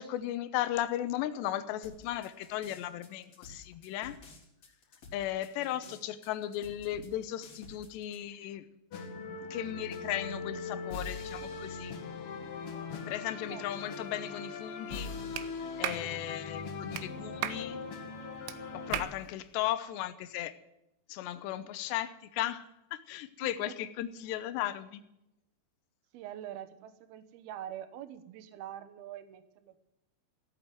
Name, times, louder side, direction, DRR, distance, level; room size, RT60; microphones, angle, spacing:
voice 1, 0.0-4.2 5.1-8.6 9.1-11.9 13.1-15.4 15.8-17.8 18.7-20.5 21.1-25.0, left 13 dB, 80° left, 13 dB, 2.9 m, -36 dB
sound 1, 1.8-8.2, left 2 dB, 35° left, 4.0 m, -53 dB
voice 2, 5.6-6.0 13.0-13.1 13.5-13.7 23.4-23.8 26.1-29.8, right 11 dB, 70° right, 11 dB, 2.8 m, -45 dB
sound 2, 8.9-19.0, left 4 dB, 60° left, 1.5 m, -40 dB
Clapping, 15.4-15.5 15.8-16.1 16.9-17.1 17.4-17.6 18.5-18.6 18.9-19.1, right 13 dB, 85° right, 3.2 m, -34 dB
16.0 x 8.9 x 9.4 m, 0.89 s
omnidirectional pair, 5.2 m